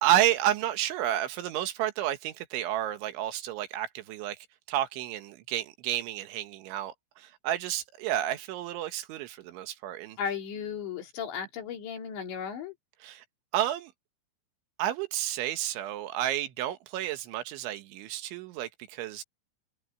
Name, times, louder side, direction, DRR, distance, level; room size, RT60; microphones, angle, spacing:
voice 1, 0.0-4.4 4.7-10.2 13.0-13.3 13.5-13.9 14.8-19.2, right 12 dB, 80° right, 3.7 m, -30 dB
voice 2, 10.2-12.7, left 7 dB, 70° left, 5.4 m, -35 dB
omnidirectional pair, 5.3 m